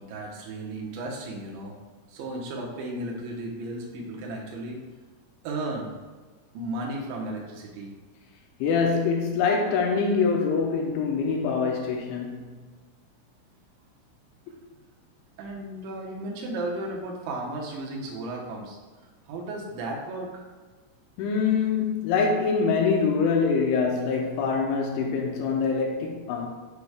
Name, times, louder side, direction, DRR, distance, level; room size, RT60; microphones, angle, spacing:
voice 1, 0.0-1.8 2.1-4.8 5.4-6.0 6.5-7.9 15.4-18.8 19.3-20.4, right 2 dB, 80° right, 3.0 m, -34 dB
voice 2, 8.6-12.6 14.5-14.6 21.2-26.5, left 5 dB, 85° left, 2.9 m, -24 dB
10.5 x 4.9 x 2.3 m
omnidirectional pair, 5.7 m